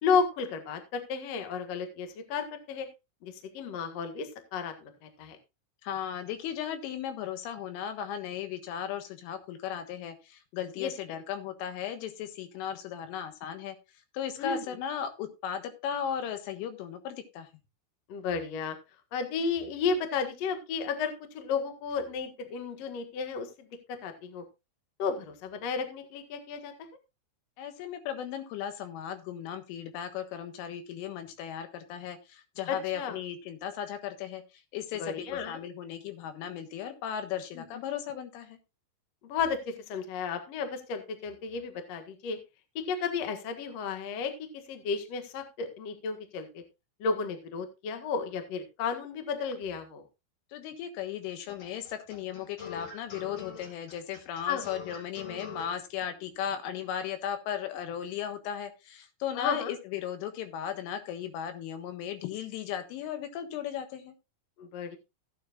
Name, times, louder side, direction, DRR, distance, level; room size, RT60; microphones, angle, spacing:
voice 1, 0.0-2.9 3.2-5.4 10.8-10.9 14.4-14.6 18.1-18.8 19.1-24.4 25.0-26.9 32.7-33.2 35.0-35.6 37.6-37.7 39.2-42.4 42.9-44.3 44.7-46.6 47.0-50.0 54.5-54.7 59.3-59.7 64.6-65.0, left 5 dB, 60° left, 7 dB, 1.7 m, -33 dB
voice 2, 5.8-13.8 14.1-17.5 27.6-38.6 50.5-64.2, left 9 dB, 90° left, 8 dB, 3.9 m, -36 dB
sound 1, 51.5-55.7, left 5 dB, 40° left, 2.4 m, -43 dB
15.5 x 9.5 x 2.5 m, 0.25 s
omnidirectional pair, 5.5 m